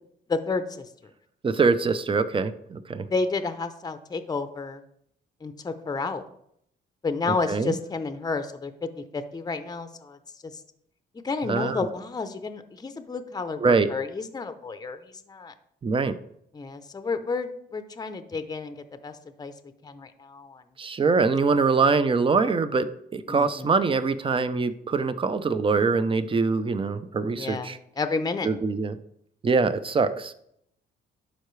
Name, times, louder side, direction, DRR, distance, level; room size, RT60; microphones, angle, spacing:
voice 1, 0.3-0.8 3.1-4.8 5.4-6.2 7.0-10.2 11.2-15.5 16.5-19.5 19.8-20.6 23.3-23.7 27.3-28.5, left 4 dB, 20° left, 9 dB, 0.7 m, -31 dB
voice 2, 1.4-3.1 7.5-7.7 11.4-11.9 13.6-13.9 15.8-16.2 20.8-27.8 28.4-29.0 29.4-30.3, right 4 dB, 25° right, 12 dB, 0.6 m, -23 dB
11.5 x 4.7 x 3.2 m, 0.72 s
cardioid pair, 90°, 20 cm